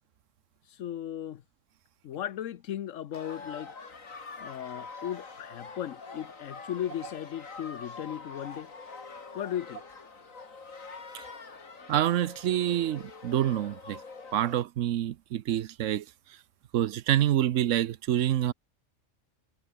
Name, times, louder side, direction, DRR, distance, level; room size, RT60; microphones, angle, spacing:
voice 1, 0.7-1.4 2.0-3.7 4.4-8.7 9.3-9.8, left 11 dB, 75° left, 1.1 m, -36 dB
sound 1, 3.1-14.6, left 4 dB, 90° left, 3.0 m, -45 dB
voice 2, 11.9-14.0 14.3-16.0 16.7-18.5, right 12 dB, 75° right, 1.0 m, -27 dB
omnidirectional pair, 1.4 m